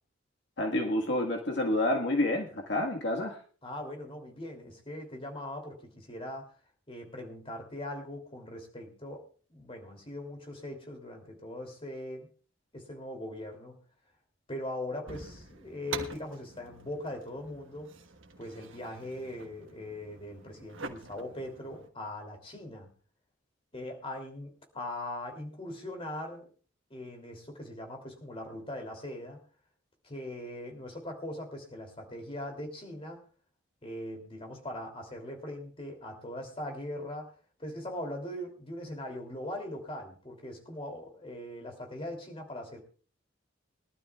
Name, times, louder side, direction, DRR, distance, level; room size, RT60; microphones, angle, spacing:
voice 1, 0.6-3.4, left 1 dB, 65° left, 1 dB, 1.7 m, -29 dB
voice 2, 3.6-6.5 6.9-12.3 12.7-13.8 14.5-17.9 18.4-22.9 23.7-26.5 26.9-29.4 30.0-33.2 33.8-37.3 37.6-42.8, left 1 dB, 30° left, 3 dB, 3.0 m, -40 dB
sound 1, 15.1-21.9, right 5 dB, 85° right, 1.4 m, -45 dB
22.5 x 12.0 x 2.4 m, 0.40 s
head